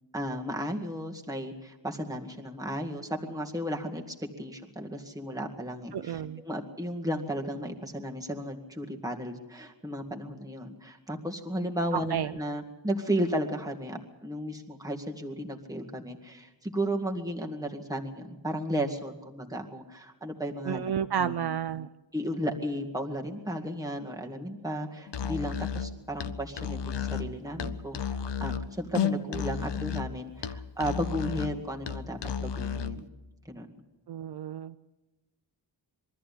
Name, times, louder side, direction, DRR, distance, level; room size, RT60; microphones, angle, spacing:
voice 1, 0.1-20.8 21.2-21.5 22.1-33.0 33.5-33.7, equal, 10° right, 1 dB, 2.0 m, -34 dB
voice 2, 5.9-6.4 11.9-12.3 20.7-21.9 34.1-34.8, right 9 dB, 60° right, 11 dB, 0.6 m, -31 dB
Musical instrument, 25.1-33.0, left 7 dB, 65° left, 1.0 m, -33 dB
23.0 x 14.0 x 8.5 m, 1.1 s
wide cardioid pair, 135°, 44 cm